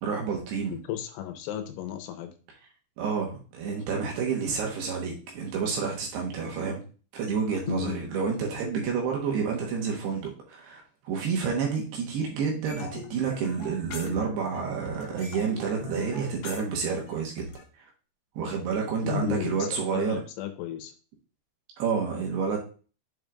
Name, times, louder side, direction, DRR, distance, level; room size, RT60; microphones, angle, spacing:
voice 1, 0.0-0.8 3.0-6.8 7.1-17.4 18.4-20.2 21.8-22.6, right 6 dB, 70° right, 0 dB, 2.9 m, -29 dB
voice 2, 0.7-2.4 7.7-7.9 19.0-20.9, left 10 dB, 85° left, 7 dB, 3.1 m, -34 dB
sound 1, 12.7-14.6 14.9-17.6, left 4 dB, 70° left, 2.6 m, -41 dB
7.4 x 5.3 x 2.4 m, 0.37 s
omnidirectional pair, 5.4 m